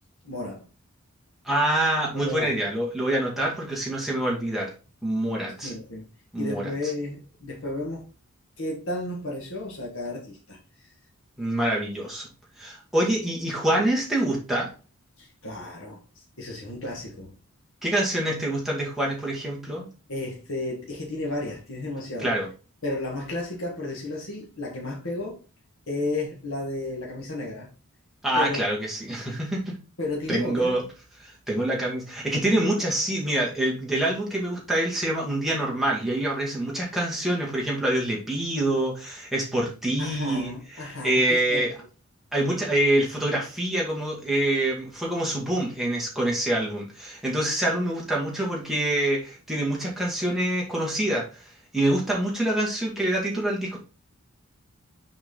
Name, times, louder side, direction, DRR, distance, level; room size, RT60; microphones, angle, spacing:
voice 1, 0.2-0.7 2.1-2.5 5.6-6.1 6.4-8.1 8.6-10.6 15.2-17.4 20.1-22.3 22.8-25.4 25.9-27.7 28.3-28.6 30.0-30.8 40.0-41.7, left 2 dB, 70° left, 1.6 m, -33 dB
voice 2, 1.4-4.7 5.0-5.7 6.3-6.7 11.4-12.3 12.6-14.7 17.8-19.9 22.2-22.5 28.2-29.8 30.3-30.8 31.2-41.7 42.3-53.8, right 1 dB, ahead, 2.0 m, -26 dB
6.2 x 4.9 x 3.7 m
head